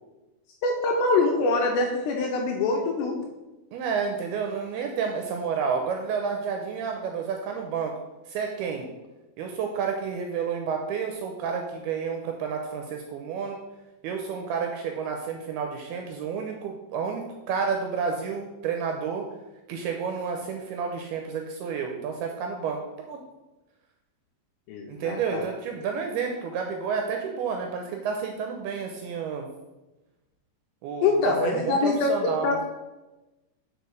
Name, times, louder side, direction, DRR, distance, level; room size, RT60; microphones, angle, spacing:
voice 1, 0.6-3.2 24.7-25.4 31.0-32.6, left 3 dB, 80° left, 0 dB, 2.9 m, -24 dB
voice 2, 3.7-7.9 8.3-8.9 9.4-13.6 14.0-19.2 19.7-22.8 23.1-23.2 24.9-29.5 30.8-32.6, right 6 dB, 80° right, 3 dB, 2.4 m, -30 dB
6.6 x 5.0 x 6.5 m, 1.1 s
omnidirectional pair, 5.0 m